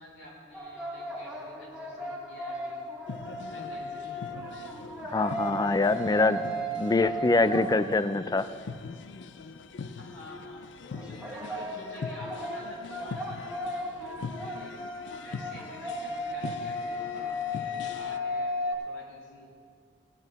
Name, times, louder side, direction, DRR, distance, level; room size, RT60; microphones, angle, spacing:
voice 1, 0.0-2.8 3.5-4.3 6.0-7.6 10.0-14.8 15.2-19.5, left 1 dB, 75° left, -6 dB, 3.7 m, -49 dB
sound 1, 0.5-8.4 10.9-18.7, left 1 dB, 5° right, 1.2 m, -36 dB
sound 2, 3.1-18.2, left 4 dB, 90° left, 0.4 m, -42 dB
voice 2, 5.0-6.4 6.8-8.4, left 3 dB, 20° left, 13 dB, 0.3 m, -24 dB
16.5 x 9.1 x 4.0 m, 2.1 s
head